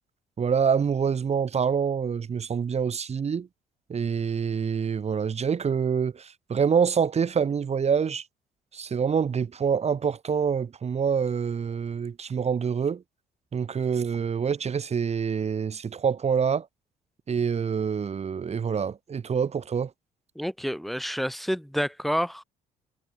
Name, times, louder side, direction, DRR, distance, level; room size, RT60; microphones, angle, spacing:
voice 1, 0.4-3.5 3.9-8.2 8.7-13.0 13.5-16.6 17.3-19.9, right 6 dB, 40° right, 1.4 m, -26 dB
voice 2, 20.3-22.4, equal, ahead, 2.8 m, -29 dB
supercardioid pair, 70°, 17 cm